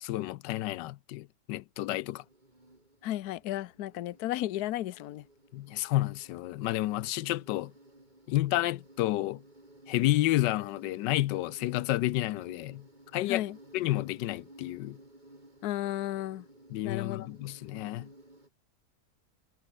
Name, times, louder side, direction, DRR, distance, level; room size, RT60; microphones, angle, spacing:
voice 1, 0.0-2.2 5.5-7.7 8.3-9.4 9.9-12.8 13.1-13.4 13.7-15.0 16.7-18.1, left 16 dB, 90° left, 1.3 m, -30 dB
Insect, 1.8-18.5, right 1 dB, 25° right, 5.8 m, -56 dB
voice 2, 3.0-5.2 13.3-13.6 15.6-16.5 16.8-17.3, left 14 dB, 70° left, 1.2 m, -33 dB
omnidirectional pair, 1.8 m